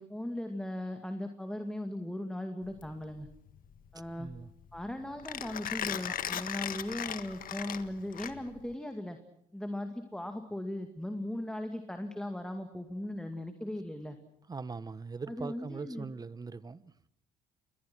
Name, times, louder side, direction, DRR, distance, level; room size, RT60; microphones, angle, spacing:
voice 1, 0.0-3.3 3.9-4.3 4.7-9.2 9.5-14.2 15.3-16.1, left 1 dB, 5° left, 2.2 m, -38 dB
Mechanisms, 2.6-8.7, left 10 dB, 55° left, 1.6 m, -38 dB
voice 2, 4.2-4.5 14.5-16.9, right 4 dB, 20° right, 1.0 m, -41 dB
29.0 x 21.5 x 6.1 m
cardioid pair, 110°, 17 cm